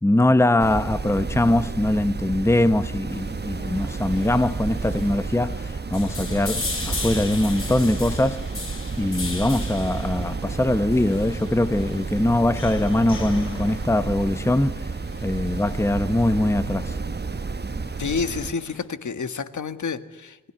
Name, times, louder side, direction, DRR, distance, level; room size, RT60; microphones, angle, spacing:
voice 1, 0.0-8.5 9.0-14.9 15.2-17.0, left 1 dB, 10° left, 0.9 m, -22 dB
sound 1, 0.6-18.5, right 4 dB, 35° right, 0.9 m, -31 dB
sound 2, 3.1-18.9, left 3 dB, 45° left, 5.9 m, -38 dB
voice 2, 18.0-20.4, left 5 dB, 70° left, 1.8 m, -29 dB
28.5 x 21.0 x 9.8 m
wide cardioid pair, 95°, 31 cm